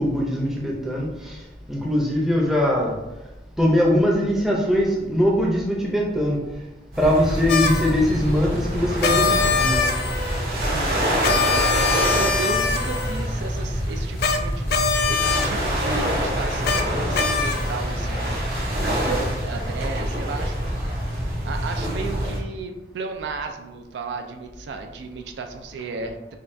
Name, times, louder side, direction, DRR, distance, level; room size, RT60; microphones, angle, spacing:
voice 1, 0.0-1.4 1.7-3.0 3.6-6.4 7.0-9.9, equal, ahead, -3 dB, 0.5 m, -21 dB
sound 1, 6.9-22.4, equal, 55° right, 0.9 m, -26 dB
sound 2, 7.5-7.9 9.0-10.4 11.2-13.3 14.2-14.4 14.7-15.5 16.6-16.8 17.1-17.8, left 5 dB, 60° left, 0.3 m, -23 dB
voice 2, 10.6-11.0 11.3-11.6 11.9-20.9 21.2-26.4, right 4 dB, 75° right, 5 dB, 0.3 m, -34 dB
5.2 x 2.3 x 2.6 m, 1.0 s
head